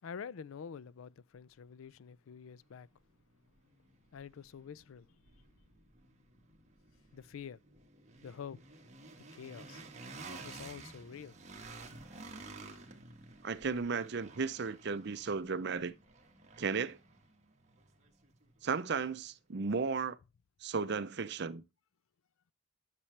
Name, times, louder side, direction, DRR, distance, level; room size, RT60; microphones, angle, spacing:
voice 1, 0.0-2.9 4.1-5.1 7.1-7.6 8.2-8.6 9.4-9.8 10.4-11.3, left 7 dB, 80° left, 0.4 m, -47 dB
sound 1, 2.6-2.7 3.1-19.1, right 3 dB, 35° right, 1.5 m, -53 dB
voice 2, 13.4-15.9 16.6-17.0 18.6-20.2 20.6-21.6, right 5 dB, 55° right, 0.6 m, -34 dB
9.9 x 6.9 x 3.3 m
head